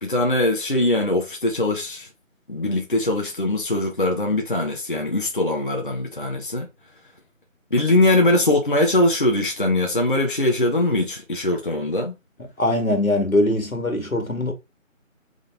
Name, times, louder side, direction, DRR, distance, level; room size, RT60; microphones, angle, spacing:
voice 1, 0.0-2.1 2.5-6.7 7.7-12.1, left 1 dB, 40° left, 0.9 m, -21 dB
voice 2, 12.4-14.5, left 1 dB, 85° left, 1.8 m, -22 dB
3.8 x 3.6 x 3.8 m
figure-of-eight pair, 165°, 40 cm